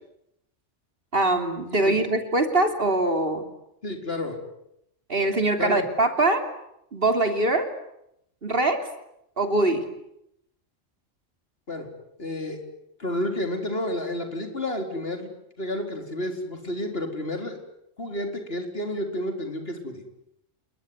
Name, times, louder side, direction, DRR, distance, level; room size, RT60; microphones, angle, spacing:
voice 1, 1.1-3.4 5.1-6.4 6.9-7.7 8.4-8.9 9.4-9.8, right 2 dB, 50° right, 6 dB, 3.4 m, -23 dB
voice 2, 1.7-2.1 3.8-4.4 5.6-5.8 11.7-11.9 12.2-12.6 13.0-15.3 15.6-17.6 18.0-20.0, left 1 dB, 50° left, 5 dB, 4.6 m, -30 dB
28.5 x 21.5 x 9.6 m, 0.80 s
omnidirectional pair, 1.3 m